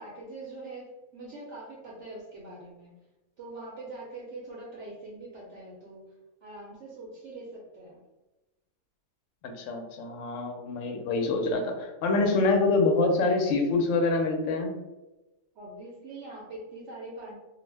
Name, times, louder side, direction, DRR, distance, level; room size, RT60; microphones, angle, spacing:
voice 1, 0.0-2.9 3.4-6.1 6.4-8.0 15.6-17.4, right 2 dB, 65° right, -4 dB, 0.8 m, -43 dB
voice 2, 9.4-14.7, left 3 dB, 65° left, 3 dB, 0.8 m, -26 dB
2.4 x 2.0 x 3.2 m, 1.0 s
omnidirectional pair, 1.5 m